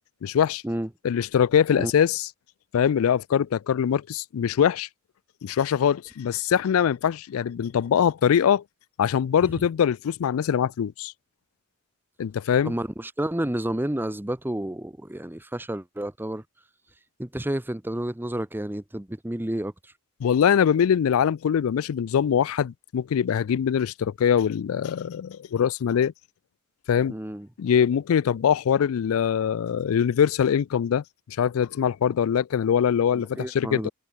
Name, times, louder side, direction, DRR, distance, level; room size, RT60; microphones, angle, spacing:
voice 1, 0.2-0.6 1.0-2.3 2.7-4.9 5.4-8.6 9.0-11.1 12.2-12.7 20.2-26.1 26.9-27.2 27.6-33.9, left 8 dB, 75° left, 0.3 m, -23 dB
voice 2, 12.6-16.4 17.2-19.9 27.1-27.5 33.1-33.9, right 1 dB, 10° right, 0.8 m, -30 dB
head